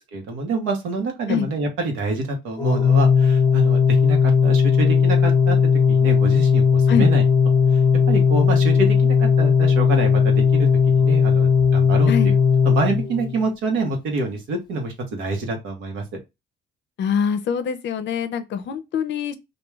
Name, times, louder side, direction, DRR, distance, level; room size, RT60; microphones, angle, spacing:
voice 1, 0.1-5.6 5.9-7.2 8.1-12.1 12.6-16.0, right 3 dB, 90° right, 0.9 m, -26 dB
Organ, 2.6-13.5, left 6 dB, 20° left, 0.6 m, -17 dB
voice 2, 17.0-19.4, left 7 dB, 65° left, 0.5 m, -24 dB
2.3 x 2.3 x 3.0 m
cardioid pair, 90°, 20 cm